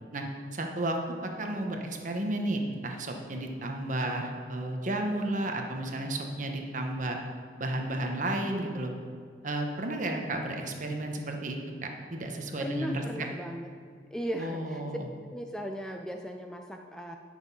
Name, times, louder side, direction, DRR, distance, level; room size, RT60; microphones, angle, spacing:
voice 1, 0.5-1.0 1.2-7.2 7.6-8.9 9.4-13.0 14.4-15.1, right 1 dB, 45° right, 3 dB, 1.0 m, -32 dB
voice 2, 12.6-13.7 14.1-14.8 15.3-17.2, equal, 5° left, 3 dB, 0.3 m, -37 dB
9.6 x 6.2 x 5.4 m, 2.1 s
head